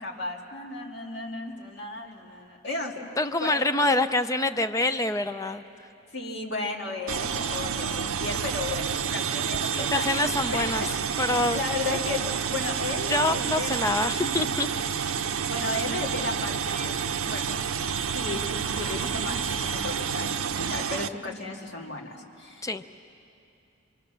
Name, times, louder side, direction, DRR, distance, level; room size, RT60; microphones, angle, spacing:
voice 1, 0.0-3.0 3.4-3.6 6.1-10.3 10.5-10.6 11.3-13.8 14.2-14.4 15.5-16.9 17.3-17.5 18.1-22.9, left 2 dB, 55° left, 0 dB, 2.3 m, -34 dB
voice 2, 3.2-5.6 9.8-10.8 11.2-11.6 13.1-14.7 22.6-22.8, left 2 dB, 15° left, 9 dB, 0.5 m, -26 dB
sound 1, 7.1-21.1, right 7 dB, 85° right, 0.6 m, -29 dB
27.0 x 22.5 x 6.8 m, 2.6 s
head